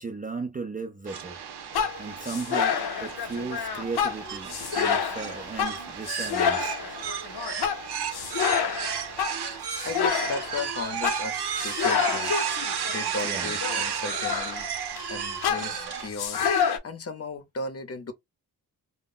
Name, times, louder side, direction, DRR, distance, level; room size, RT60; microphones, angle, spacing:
voice 1, 0.0-1.4 2.0-6.7 13.2-13.5, right 4 dB, 25° right, 0.3 m, -36 dB
sound 1, 1.1-16.1, right 7 dB, 85° right, 0.7 m, -33 dB
sound 2, 1.7-15.0 15.4-16.8, left 7 dB, 75° left, 0.7 m, -28 dB
voice 2, 9.3-12.3 12.9-14.7 15.1-18.1, left 3 dB, 40° left, 0.6 m, -36 dB
2.1 x 2.0 x 3.6 m
wide cardioid pair, 125°, 38 cm